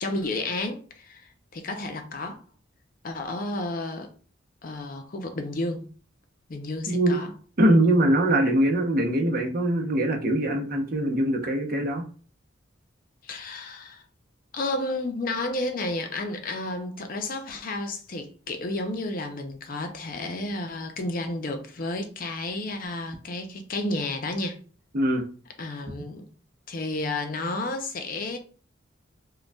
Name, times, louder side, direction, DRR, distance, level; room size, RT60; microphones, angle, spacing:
voice 1, 0.0-2.4 3.0-4.1 4.6-5.9 6.5-7.3 13.2-14.0 14.5-24.6 25.6-26.3 26.7-28.4, left 2 dB, 45° left, 0.5 m, -31 dB
voice 2, 6.9-7.2 7.6-12.0 24.9-25.2, right 1 dB, 50° right, 0.7 m, -22 dB
5.1 x 2.3 x 2.2 m
head